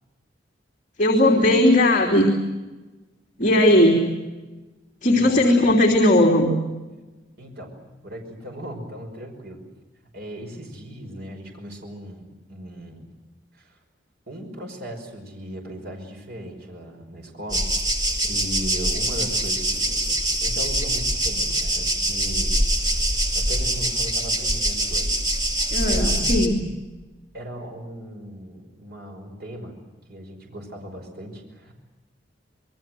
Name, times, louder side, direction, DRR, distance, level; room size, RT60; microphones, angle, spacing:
voice 1, 1.0-2.3 3.4-4.1 5.0-6.5 25.7-26.5, left 1 dB, 45° left, 1 dB, 3.1 m, -17 dB
voice 2, 5.1-5.4 7.4-7.7 8.0-9.6 10.1-13.0 13.5-13.8 14.3-17.7 18.2-22.6 22.9-23.1 23.3-25.2 25.8-26.4 27.3-29.7 30.1-31.7, equal, 60° right, 2 dB, 5.6 m, -37 dB
sound 1, 17.5-26.5, right 1 dB, 20° right, 2.5 m, -24 dB
27.5 x 22.0 x 7.8 m, 1.2 s
head